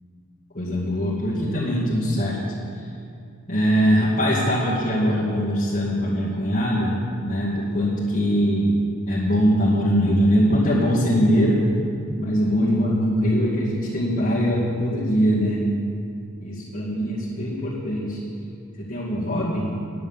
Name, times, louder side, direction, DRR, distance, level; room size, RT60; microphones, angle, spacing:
voice 1, 0.5-2.4 2.7-2.9 3.5-6.9 7.2-8.7 9.1-11.6 12.2-15.6 16.4-18.2 18.8-19.7, equal, 40° left, -10 dB, 2.3 m, -22 dB
10.5 x 9.9 x 7.4 m, 2.5 s
head